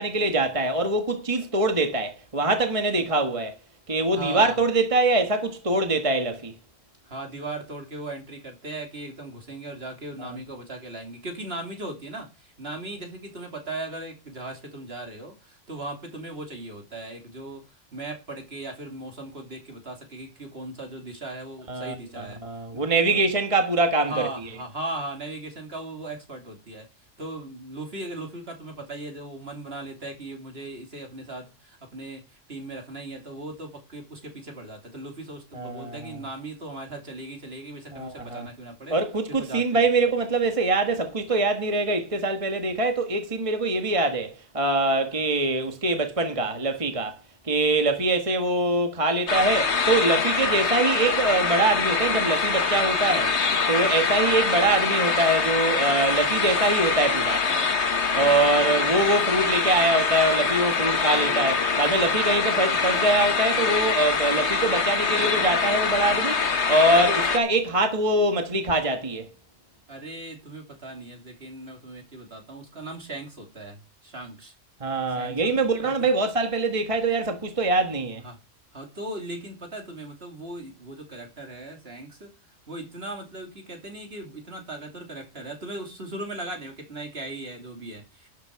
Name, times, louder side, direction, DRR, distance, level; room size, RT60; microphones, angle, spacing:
voice 1, 0.0-3.5 3.9-6.5 10.2-10.3 21.7-24.5 35.5-36.2 37.9-38.5 38.9-47.2 47.4-53.3 53.7-57.4 58.1-69.3 74.8-78.2, right 2 dB, 25° right, 1.5 m, -24 dB
voice 2, 4.1-4.6 7.0-17.6 17.9-22.4 22.7-23.2 24.1-26.9 27.2-32.2 32.5-39.0 39.3-39.8 69.9-74.5 75.2-75.6 75.8-76.0 78.2-78.4 78.7-82.3 82.7-88.3, right 2 dB, 55° right, 3.3 m, -38 dB
sound 1, 49.3-67.4, left 5 dB, 65° left, 1.6 m, -24 dB
12.5 x 8.3 x 4.7 m
omnidirectional pair, 1.2 m